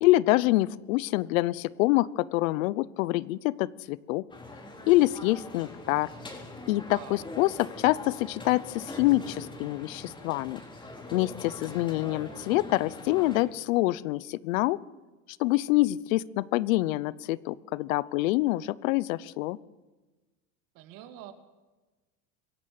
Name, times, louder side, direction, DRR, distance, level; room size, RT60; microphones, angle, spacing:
voice 1, 0.0-4.2 4.9-6.1 6.7-10.6 11.1-14.8 15.4-19.6, left 18 dB, 75° left, 20 dB, 0.9 m, -26 dB
sound 1, 4.3-13.4, left 2 dB, 10° left, 4.2 m, -43 dB
voice 2, 6.9-7.3 20.7-21.3, right 12 dB, 55° right, 8 dB, 2.5 m, -45 dB
26.0 x 16.0 x 7.8 m, 1.2 s
supercardioid pair, 130°, 40 cm